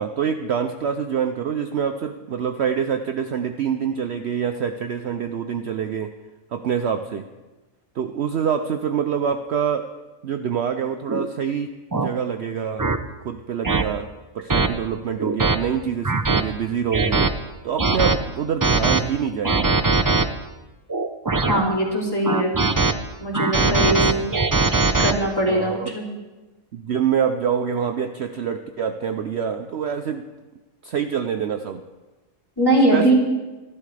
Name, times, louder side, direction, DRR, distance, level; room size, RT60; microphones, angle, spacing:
voice 1, 0.0-6.1 6.5-7.3 8.0-9.9 10.2-12.9 13.2-17.3 17.6-19.7 23.5-24.1 25.5-25.9 26.7-30.3 30.8-31.8 32.9-33.1, right 7 dB, 60° right, 7 dB, 0.8 m, -26 dB
sound 1, 11.1-11.3 11.9-12.1 12.8-13.0 13.6-13.8 14.5-14.7 15.2-15.6 16.0-16.4 16.9-17.3 17.8-18.2 18.6-19.0 19.4-20.2 20.9-21.6 22.2-22.9 23.3-25.1, right 3 dB, 30° right, 0.4 m, -20 dB
voice 2, 21.5-22.6 23.2-24.2 25.0-26.0 32.6-33.1, right 1 dB, 15° left, -3 dB, 3.1 m, -21 dB
25.5 x 12.0 x 3.4 m, 1.1 s
omnidirectional pair, 1.5 m